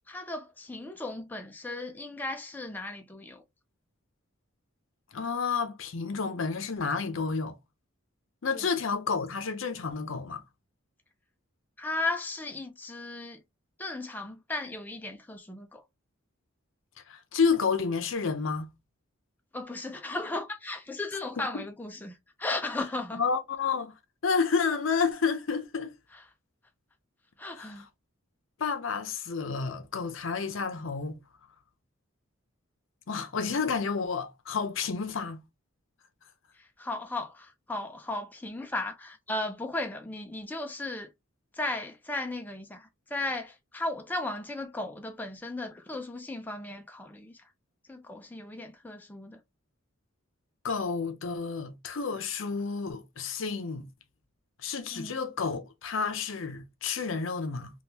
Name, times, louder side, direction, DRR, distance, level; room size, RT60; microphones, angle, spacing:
voice 1, 0.1-3.4 8.5-8.7 11.8-13.4 13.8-15.8 19.5-23.2 27.4-27.9 36.6-41.1 41.5-47.4 47.9-49.4 54.9-55.1, left 2 dB, 10° left, 0.3 m, -36 dB
voice 2, 5.1-7.5 8.4-10.4 17.1-18.7 21.4-21.6 23.1-23.9 24.2-25.9 27.5-27.9 28.6-31.2 33.1-35.4 50.6-53.8 54.6-57.7, left 5 dB, 65° left, 0.6 m, -30 dB
3.5 x 2.3 x 2.8 m
head